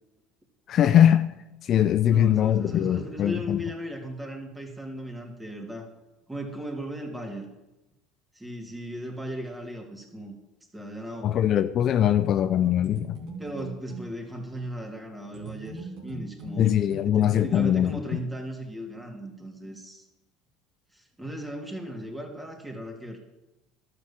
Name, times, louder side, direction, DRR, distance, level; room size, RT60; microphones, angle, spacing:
voice 1, 0.7-1.3 1.6-3.6 11.2-13.2 16.6-17.9, left 10 dB, 50° left, 0.5 m, -21 dB
voice 2, 2.1-5.9 6.3-7.5 8.3-10.4 10.7-11.3 13.4-16.7 17.0-20.1 20.9-23.2, equal, 10° right, 3.0 m, -37 dB
sound 1, 12.6-14.1 15.3-17.6, right 3 dB, 65° right, 3.2 m, -41 dB
12.0 x 6.8 x 7.3 m
hypercardioid pair, 75°, 0 cm